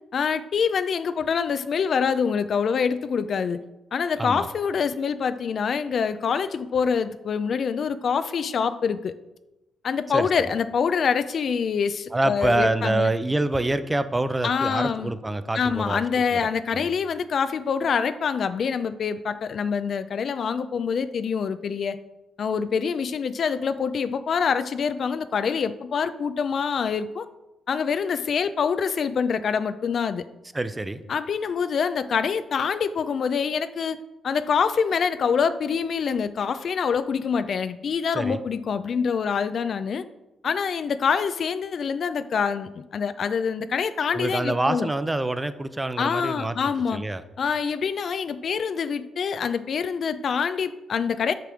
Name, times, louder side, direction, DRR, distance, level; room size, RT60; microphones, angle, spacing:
voice 1, 0.1-3.6 3.9-9.1 9.8-13.1 14.4-15.1 15.5-22.0 22.4-27.3 27.7-30.3 31.1-34.0 34.2-40.0 40.4-44.9 46.0-47.0 47.4-51.3, left 6 dB, 60° left, 12 dB, 0.4 m, -25 dB
voice 2, 12.1-16.0 16.3-16.9 30.5-31.0 38.1-38.4 44.1-46.6 46.9-47.2, right 2 dB, 15° right, 12 dB, 0.5 m, -26 dB
6.6 x 6.0 x 4.9 m, 0.97 s
cardioid pair, 90°, 0 cm